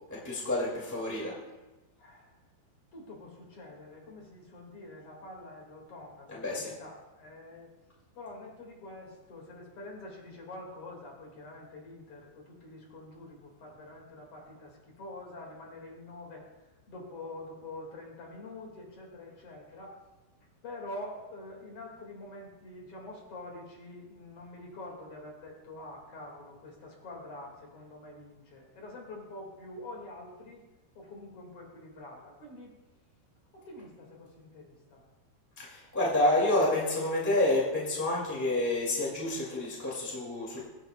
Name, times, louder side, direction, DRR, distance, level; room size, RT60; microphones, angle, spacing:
voice 1, 0.2-1.3 6.3-6.7 35.6-40.6, left 1 dB, 20° left, -5 dB, 0.5 m, -28 dB
voice 2, 2.0-2.4 2.9-7.7 8.1-16.5 16.9-20.0 20.6-30.6 30.9-32.8 33.5-35.0, left 2 dB, 45° left, -1 dB, 2.3 m, -46 dB
23.0 x 7.9 x 2.2 m, 1.1 s
omnidirectional pair, 4.6 m